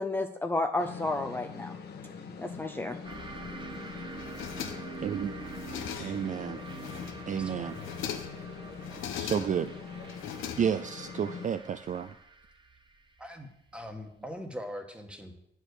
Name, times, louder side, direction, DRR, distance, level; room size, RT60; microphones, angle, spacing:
voice 1, 0.0-1.8 2.4-3.0, left 2 dB, 10° left, 4 dB, 0.5 m, -31 dB
sound 1, 0.8-11.5, left 5 dB, 55° left, 1.2 m, -43 dB
sound 2, 3.0-14.2, right 4 dB, 25° right, 0.8 m, -46 dB
sound 3, 4.2-5.1 5.4-6.3 6.7-7.3 7.7-8.5 8.8-9.7 10.1-11.1, left 9 dB, 85° left, 0.7 m, -40 dB
voice 2, 5.0-5.3 6.0-6.6 7.3-7.8 9.1-9.7 10.6-12.1, right 8 dB, 40° right, 10 dB, 0.4 m, -31 dB
voice 3, 7.3-7.8 13.2-15.3, equal, 5° right, 4 dB, 1.3 m, -42 dB
8.7 x 4.7 x 6.6 m, 0.78 s
cardioid pair, 90°, 20 cm